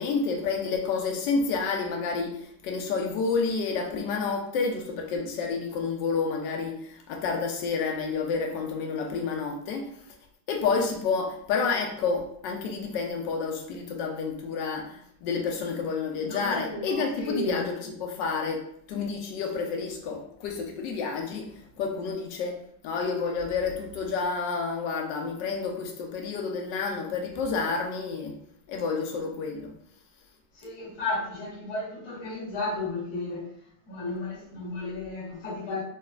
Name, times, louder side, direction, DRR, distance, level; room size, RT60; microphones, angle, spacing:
voice 1, 0.0-9.9 10.5-21.5 21.8-22.6 22.8-28.4 28.7-29.7, left 4 dB, 75° left, 1.2 m, -29 dB
voice 2, 16.2-17.6 30.5-33.5 33.9-35.8, left 2 dB, 45° left, 1.5 m, -33 dB
4.0 x 2.1 x 2.3 m
omnidirectional pair, 2.1 m